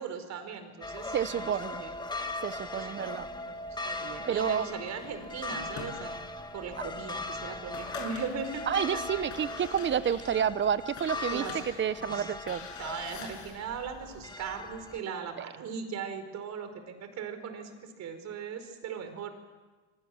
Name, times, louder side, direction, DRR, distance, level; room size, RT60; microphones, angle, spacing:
voice 1, 0.0-2.0 2.7-3.6 3.8-6.3 6.5-9.3 11.3-11.6 12.0-12.3 12.8-19.3, right 6 dB, 45° right, 8 dB, 4.6 m, -39 dB
sound 1, 0.8-15.0, left 2 dB, 10° left, 1.9 m, -39 dB
voice 2, 1.1-1.8 2.4-3.3 4.3-4.7 8.7-12.7 15.4-15.5, right 8 dB, 30° right, 15 dB, 1.1 m, -30 dB
sound 2, 4.9-6.4 7.0-7.1 7.5-8.7 9.2-13.8, left 6 dB, 50° left, 7.4 m, -45 dB
26.0 x 24.0 x 7.4 m, 1.3 s
supercardioid pair, 105°, 36 cm